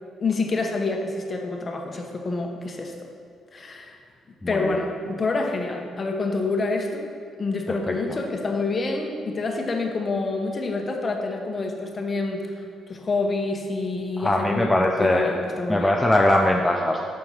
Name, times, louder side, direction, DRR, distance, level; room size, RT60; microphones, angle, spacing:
voice 1, 0.2-2.9 3.5-4.0 4.5-7.1 7.4-12.5 12.9-15.9, left 3 dB, 35° left, 3 dB, 0.9 m, -27 dB
voice 2, 4.4-4.8 7.7-8.2 14.2-15.3 15.7-17.1, left 1 dB, 10° left, 1 dB, 0.5 m, -22 dB
6.4 x 4.5 x 5.6 m, 2.4 s
cardioid pair, 90°, 0 cm